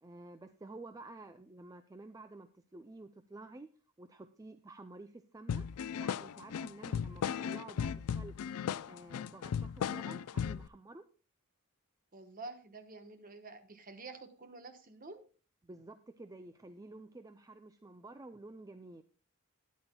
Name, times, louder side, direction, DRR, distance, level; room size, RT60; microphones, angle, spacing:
voice 1, 0.0-3.7 4.0-5.7 6.0-8.3 8.9-11.0 15.6-19.0, right 2 dB, 15° right, 8 dB, 0.4 m, -51 dB
sound 1, 5.5-10.7, left 7 dB, 85° left, 0.4 m, -36 dB
voice 2, 12.1-15.2, right 3 dB, 40° right, 8 dB, 1.1 m, -49 dB
13.0 x 10.5 x 2.2 m, 0.37 s
head